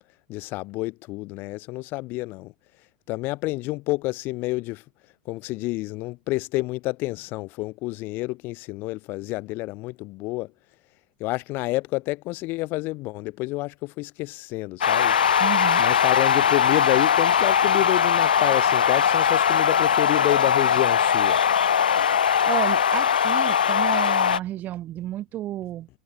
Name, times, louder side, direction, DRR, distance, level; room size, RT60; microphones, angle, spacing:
voice 1, 0.3-2.5 3.1-4.8 5.2-10.5 11.2-15.2 15.8-21.4, left 21 dB, 45° left, 3.4 m, -29 dB
sound 1, 14.8-24.4, left 8 dB, 75° left, 0.4 m, -20 dB
voice 2, 15.4-15.8 22.4-25.9, right 13 dB, 35° right, 1.0 m, -31 dB
figure-of-eight pair, 90°, 5 cm